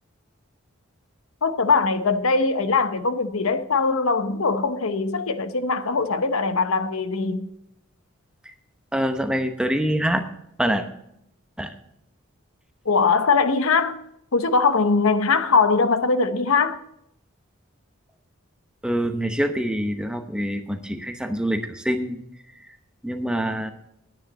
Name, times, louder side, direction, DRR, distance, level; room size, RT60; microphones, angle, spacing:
voice 1, 1.4-7.5 12.8-14.0 14.3-16.8, left 4 dB, 75° left, 0.9 m, -21 dB
voice 2, 8.9-10.2 10.6-10.9 11.6-11.7 18.8-22.2 22.6-22.8 23.0-23.7, equal, 5° right, 0.8 m, -25 dB
10.5 x 9.4 x 6.1 m
head